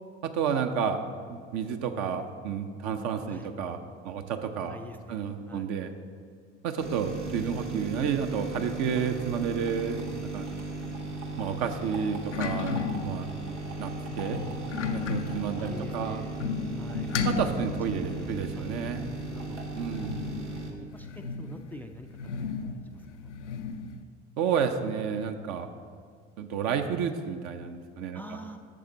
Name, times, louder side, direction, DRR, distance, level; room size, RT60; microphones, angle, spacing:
voice 1, 0.2-1.0 1.3-3.8 4.0-4.8 5.1-5.9 6.6-10.0 10.3-10.5 11.3-13.5 13.8-13.9 14.2-14.4 14.9-16.2 17.2-19.1 19.8-20.2 24.4-25.7 26.4-28.2, right 7 dB, 50° right, 7 dB, 0.8 m, -31 dB
voice 2, 4.7-5.7 15.6-16.4 16.8-17.2 18.2-18.3 18.6-18.9 19.3-19.6 20.7-22.5 22.9-23.3 28.1-28.6, left 1 dB, 5° left, 5 dB, 0.4 m, -45 dB
sound 1, 6.8-20.7, right 3 dB, 90° right, 1.0 m, -37 dB
sound 2, 9.8-24.0, left 5 dB, 80° left, 0.6 m, -36 dB
11.5 x 7.2 x 3.9 m, 2.1 s
figure-of-eight pair, 60°, 35 cm